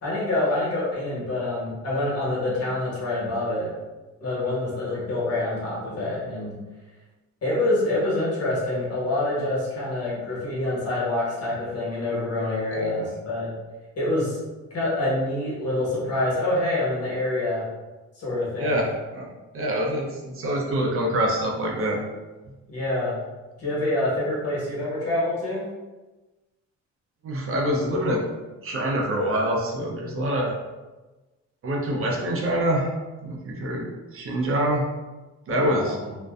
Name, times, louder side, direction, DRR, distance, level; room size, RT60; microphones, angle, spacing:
voice 1, 0.0-3.7 4.2-6.5 7.4-13.5 14.0-14.4 14.7-17.6 18.2-18.8 22.7-23.1 23.6-25.7 35.5-36.2, left 2 dB, 55° left, -6 dB, 1.2 m, -26 dB
voice 2, 12.7-13.1 18.6-19.3 19.5-22.0 27.2-28.2 28.6-30.5 31.6-32.9 33.2-33.9 34.1-34.8 35.5-36.0, equal, 45° right, -1 dB, 0.5 m, -25 dB
2.5 x 2.1 x 2.3 m, 1.2 s
cardioid pair, 90°, 30 cm